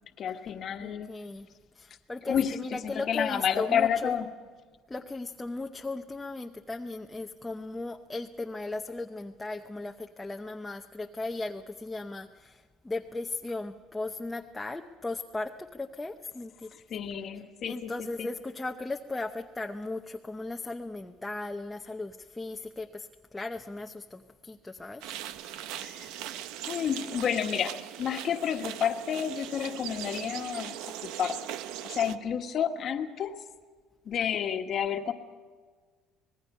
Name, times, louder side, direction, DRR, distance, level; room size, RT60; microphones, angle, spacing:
voice 1, 0.2-1.1 2.3-4.3 16.7-17.9 18.2-18.3 25.8-26.1 26.7-31.4 31.8-33.4 34.0-35.1, left 8 dB, 45° left, 6 dB, 1.4 m, -30 dB
voice 2, 0.8-1.5 1.7-4.1 4.9-16.7 17.7-25.3, left 2 dB, 10° left, 3 dB, 0.7 m, -37 dB
sound 1, 25.0-32.2, right 11 dB, 80° right, 0.8 m, -40 dB
26.0 x 20.0 x 5.5 m, 1.5 s
cardioid pair, 130°, 0 cm